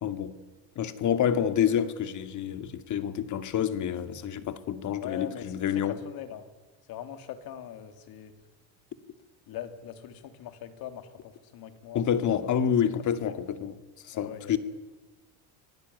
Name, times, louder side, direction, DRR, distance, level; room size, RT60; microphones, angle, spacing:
voice 1, 0.0-0.4 0.8-6.0 11.9-13.7 14.0-14.6, left 9 dB, 50° left, 2.3 m, -28 dB
voice 2, 5.0-6.5 6.9-8.3 9.5-12.0 12.4-12.6 13.3-13.4 14.1-14.6, left 10 dB, 65° left, 3.1 m, -41 dB
27.0 x 19.0 x 9.6 m
cardioid pair, 125°, 39 cm